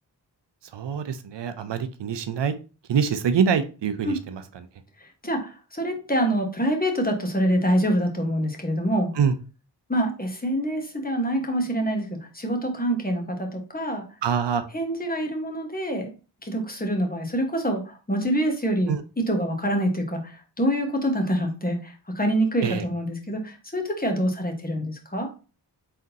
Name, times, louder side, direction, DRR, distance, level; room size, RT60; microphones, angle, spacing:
voice 1, 0.7-2.5 2.9-4.4 9.2-9.3 14.2-14.6 18.9-19.0 22.6-22.8, right 7 dB, 75° right, 11 dB, 0.6 m, -24 dB
voice 2, 5.0-9.1 9.9-14.0 14.7-16.1 16.4-19.0 19.3-25.3, equal, 20° left, 3 dB, 1.2 m, -26 dB
4.2 x 3.7 x 2.7 m, 0.34 s
cardioid pair, 50°, 43 cm